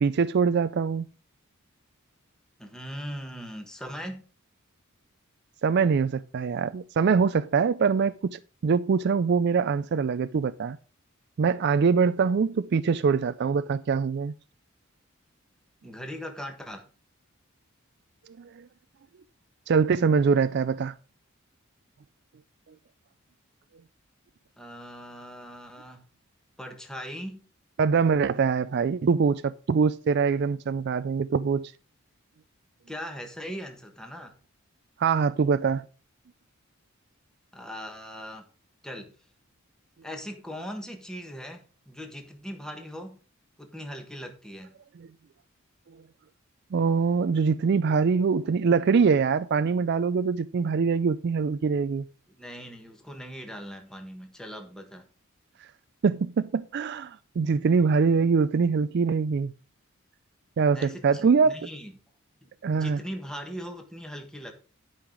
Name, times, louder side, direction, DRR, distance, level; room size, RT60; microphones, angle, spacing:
voice 1, 0.0-1.0 5.6-10.8 11.4-14.3 18.4-18.6 19.7-20.9 27.8-31.7 35.0-35.8 46.7-52.0 56.0-59.5 60.6-61.6 62.6-63.0, right 5 dB, 50° right, 0.3 m, -23 dB
voice 2, 2.6-4.2 15.8-16.9 24.6-26.0 26.6-27.5 32.9-34.3 37.5-38.5 38.8-39.1 40.0-43.2 43.6-44.7 52.4-55.1 60.7-61.9 62.4-64.5, equal, 5° left, 1.4 m, -40 dB
11.5 x 5.6 x 4.9 m
head